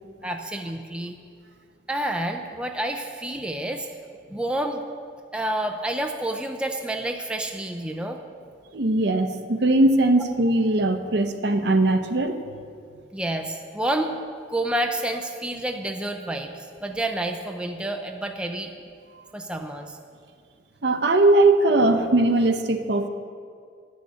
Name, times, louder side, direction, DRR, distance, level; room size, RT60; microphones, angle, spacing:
voice 1, 0.2-1.2 1.9-3.9 4.3-4.8 5.3-8.2 13.1-14.2 14.5-18.7 19.3-20.0, right 1 dB, 5° right, 4 dB, 0.4 m, -29 dB
voice 2, 8.7-12.4 20.8-23.1, right 2 dB, 65° right, 8 dB, 0.8 m, -20 dB
10.5 x 6.5 x 8.2 m, 2.3 s
head